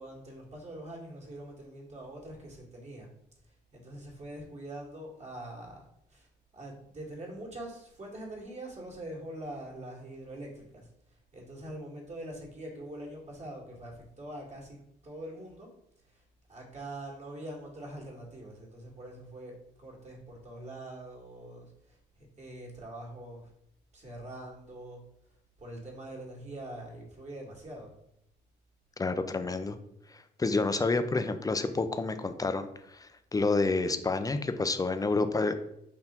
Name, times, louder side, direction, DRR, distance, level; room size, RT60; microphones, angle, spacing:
voice 1, 0.0-3.1 3.7-6.3 6.5-10.9 11.3-15.7 16.1-16.2 16.5-23.5 23.9-25.0 25.6-27.9, right 1 dB, 35° right, -2 dB, 1.8 m, -44 dB
voice 2, 29.0-29.8 30.4-35.5, left 3 dB, 20° left, 9 dB, 0.5 m, -29 dB
4.1 x 2.8 x 4.2 m, 0.77 s
supercardioid pair, 75°, 19 cm